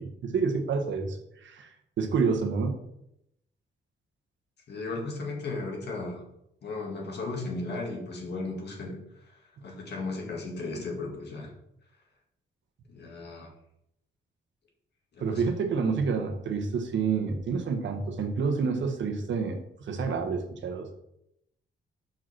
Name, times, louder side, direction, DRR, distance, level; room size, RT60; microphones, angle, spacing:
voice 1, 0.0-2.7 15.2-20.9, right 5 dB, 70° right, 6 dB, 1.1 m, -29 dB
voice 2, 4.7-6.2 6.6-9.0 9.3-11.5 12.9-13.5 15.1-15.4, left 3 dB, 60° left, 0 dB, 2.0 m, -35 dB
5.8 x 5.2 x 6.0 m, 0.79 s
wide cardioid pair, 155°, 20 cm